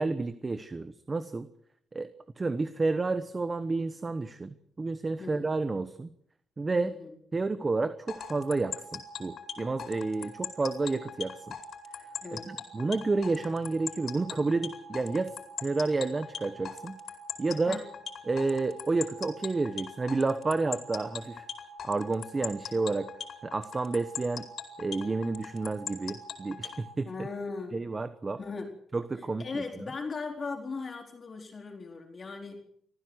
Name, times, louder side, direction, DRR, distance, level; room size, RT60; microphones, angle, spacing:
voice 1, 0.0-1.5 1.9-2.1 2.4-6.1 6.6-6.9 7.3-11.6 12.3-17.0 17.4-17.8 18.3-21.4 21.8-23.1 23.4-24.5 24.8-27.1 27.7-28.4 28.9-29.6, right 3 dB, 25° right, 12 dB, 1.1 m, -30 dB
voice 2, 5.2-5.5 6.8-7.2 12.2-12.6 17.7-17.9 27.1-27.9 28.4-28.7 29.2-32.6, left 4 dB, 35° left, 0 dB, 4.4 m, -38 dB
sound 1, 8.1-26.8, left 7 dB, 65° left, 4.8 m, -40 dB
25.5 x 15.0 x 8.1 m, 0.66 s
cardioid pair, 115°, 0 cm